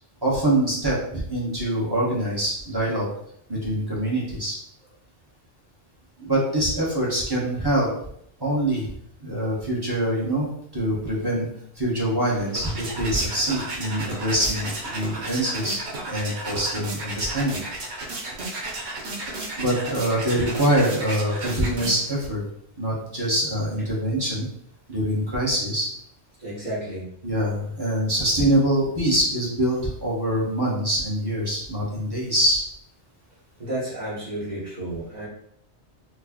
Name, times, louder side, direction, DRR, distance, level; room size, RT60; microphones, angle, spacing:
voice 1, 0.2-3.1 3.5-4.6 6.2-7.9 8.4-8.9 9.2-11.5 11.8-15.8 16.0-17.6 19.2-19.3 19.6-22.4 22.8-24.5 24.9-25.9 27.2-32.6, right 1 dB, 20° right, -6 dB, 1.2 m, -24 dB
sound 1, 12.2-22.3, right 2 dB, 80° right, 1.1 m, -34 dB
voice 2, 26.4-27.1 33.6-35.3, right 1 dB, 40° right, -9 dB, 1.5 m, -31 dB
4.4 x 2.3 x 2.9 m, 0.69 s
omnidirectional pair, 1.1 m